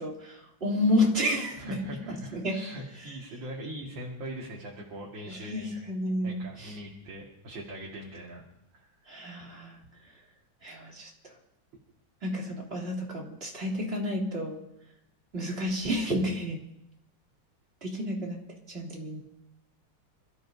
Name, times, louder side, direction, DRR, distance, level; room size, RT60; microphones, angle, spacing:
voice 1, 0.0-2.6 3.0-3.1 5.3-6.8 9.1-9.8 10.6-11.1 12.2-14.6 15.3-16.6 17.8-18.4 18.7-19.2, left 1 dB, 30° right, -3 dB, 3.3 m, -30 dB
voice 2, 1.6-5.7 6.2-8.5 8.7-9.1, equal, 70° right, -3 dB, 2.8 m, -41 dB
28.0 x 14.0 x 2.8 m, 0.82 s
omnidirectional pair, 2.2 m